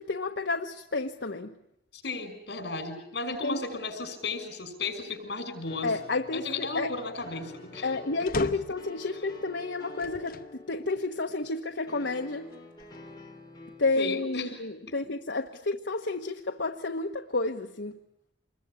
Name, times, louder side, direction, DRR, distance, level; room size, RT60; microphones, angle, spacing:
voice 1, 0.0-1.5 3.4-3.6 5.8-6.9 7.8-10.4 10.7-12.5 13.8-18.0, left 3 dB, 90° left, 1.2 m, -30 dB
voice 2, 1.9-6.0 6.3-7.9 14.0-15.0, left 3 dB, 70° left, 6.1 m, -35 dB
sound 1, 5.7-13.9, left 2 dB, 25° left, 4.6 m, -48 dB
sound 2, 8.3-8.9 10.0-10.5 11.2-11.3 12.5-13.3, left 3 dB, 55° left, 1.2 m, -38 dB
27.0 x 22.0 x 9.7 m
head